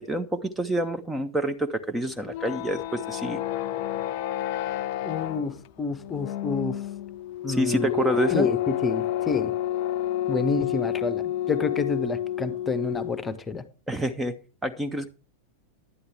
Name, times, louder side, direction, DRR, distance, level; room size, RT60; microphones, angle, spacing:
voice 1, 0.1-3.4 7.5-8.5 13.9-15.1, right 1 dB, 10° right, 0.8 m, -27 dB
sound 1, 2.1-13.3, left 12 dB, 45° left, 0.5 m, -30 dB
voice 2, 5.0-6.8 7.4-7.9 8.3-9.6 10.3-13.7, left 4 dB, 15° left, 1.0 m, -29 dB
11.5 x 9.8 x 3.5 m
figure-of-eight pair, 90°, 0 cm